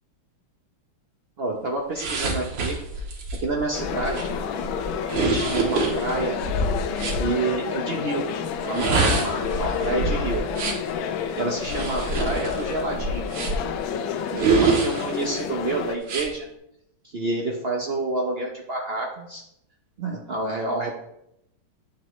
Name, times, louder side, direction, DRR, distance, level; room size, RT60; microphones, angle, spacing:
voice 1, 1.4-2.8 3.3-4.3 5.2-6.4 7.1-8.3 8.6-10.4 10.7-10.9 11.3-13.3 14.3-16.5 17.0-19.4 20.0-20.9, right 2 dB, 85° right, 0 dB, 0.5 m, -28 dB
sound 1, 2.0-7.2 8.6-10.9 11.6-13.8 14.4-15.4 16.0-16.3, right 3 dB, 70° right, 2.1 m, -26 dB
sound 2, 3.7-16.0, left 7 dB, 75° left, 1.4 m, -30 dB
8.9 x 7.1 x 3.1 m, 0.80 s
omnidirectional pair, 2.3 m